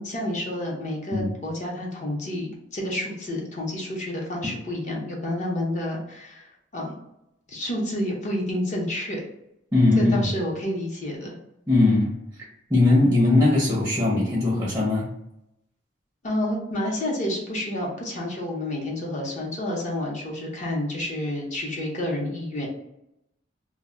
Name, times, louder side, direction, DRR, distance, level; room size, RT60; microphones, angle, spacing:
voice 1, 0.0-6.5 6.7-7.0 7.5-9.2 10.0-11.3 16.2-22.7, left 1 dB, 40° left, -2 dB, 0.7 m, -29 dB
voice 2, 9.7-10.1 11.7-12.1 12.7-15.1, left 2 dB, 10° right, -5 dB, 0.6 m, -19 dB
2.1 x 2.1 x 3.6 m, 0.84 s
head